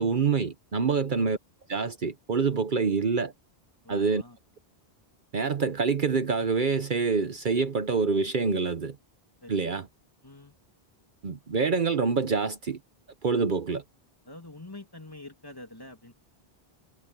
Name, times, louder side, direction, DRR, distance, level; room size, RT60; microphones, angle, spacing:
voice 1, 0.0-1.4 1.7-3.3 3.9-4.2 5.3-9.0 9.5-9.9 11.2-12.8 13.2-13.8, right 5 dB, 55° right, 1.0 m, -26 dB
voice 2, 3.8-4.4 9.4-9.7 10.2-10.5 14.3-16.1, left 2 dB, 20° left, 3.0 m, -46 dB
omnidirectional pair, 1.0 m